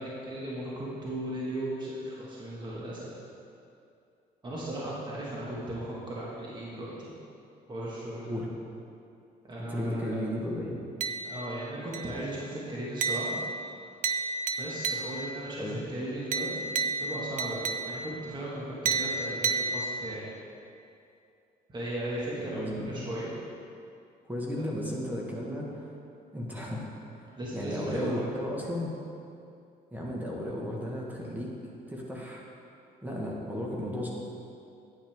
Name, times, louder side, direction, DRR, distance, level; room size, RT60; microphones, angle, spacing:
voice 1, 0.0-3.2 4.4-7.1 7.7-8.3 9.4-10.2 11.2-13.4 14.6-20.4 21.7-23.3 24.6-24.7 27.4-28.2, right 1 dB, 25° right, -6 dB, 1.9 m, -36 dB
voice 2, 9.6-10.8 15.6-15.8 22.6-23.1 24.3-26.0 26.3-26.9 27.1-28.9 29.9-31.5 31.9-32.4 33.0-34.1, left 1 dB, 10° right, -3 dB, 1.5 m, -34 dB
sound 1, 11.0-11.6 11.9-12.4 13.0-15.4 16.3-18.2 18.9-20.3, right 4 dB, 50° right, 0.5 m, -32 dB
9.6 x 8.9 x 3.6 m, 2.6 s
cardioid pair, 110°, 17 cm